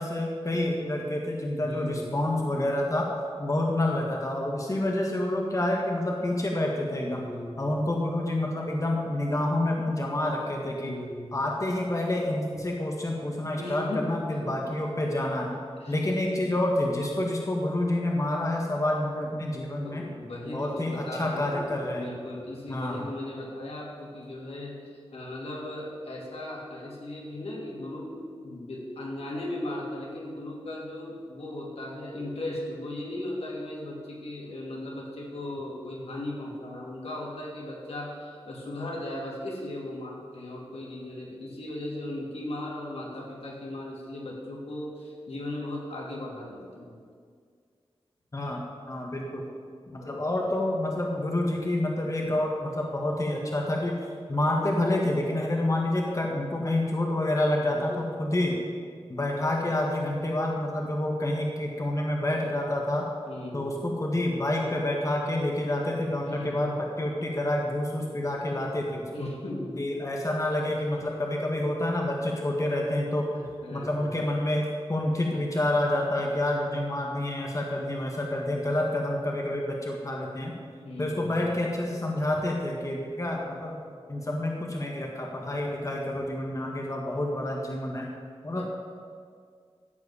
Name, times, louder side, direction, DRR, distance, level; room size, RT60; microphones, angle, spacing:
voice 1, 0.0-3.1 3.4-7.2 7.6-11.0 11.3-15.5 15.9-20.1 20.4-22.1 22.7-23.0 48.3-49.4 49.9-58.6 59.1-63.1 63.5-66.7 67.0-69.3 69.8-73.3 73.7-80.5 81.0-83.8 84.1-88.1 88.4-88.6, left 1 dB, 30° left, 0 dB, 1.6 m, -28 dB
voice 2, 1.5-2.1 7.1-7.8 10.8-11.4 13.5-14.1 14.4-14.5 15.8-16.1 19.8-47.0 50.0-50.3 57.7-58.0 63.3-63.8 66.2-66.7 69.1-69.9 73.3-74.2 80.8-81.6 88.5-88.6, left 1 dB, 80° left, -3 dB, 2.6 m, -37 dB
14.0 x 4.9 x 8.4 m, 2.1 s
wide cardioid pair, 70°, 10 cm